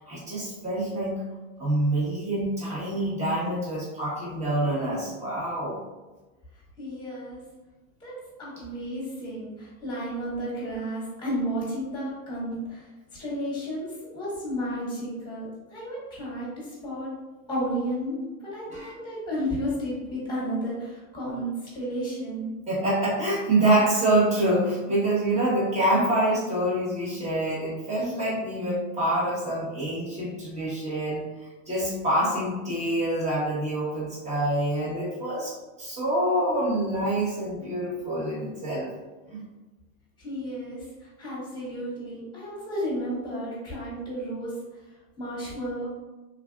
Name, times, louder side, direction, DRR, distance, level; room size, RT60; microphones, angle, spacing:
voice 1, 0.1-1.2 1.6-5.8 18.7-18.9 22.7-31.2 31.7-38.9 39.3-39.4, right 1 dB, 15° right, -6 dB, 1.0 m, -26 dB
voice 2, 6.8-7.4 8.0-17.1 17.5-22.5 40.2-44.5 45.2-45.9, equal, 10° left, -6 dB, 1.4 m, -32 dB
3.4 x 2.5 x 2.3 m, 1.2 s
supercardioid pair, 140°, 43 cm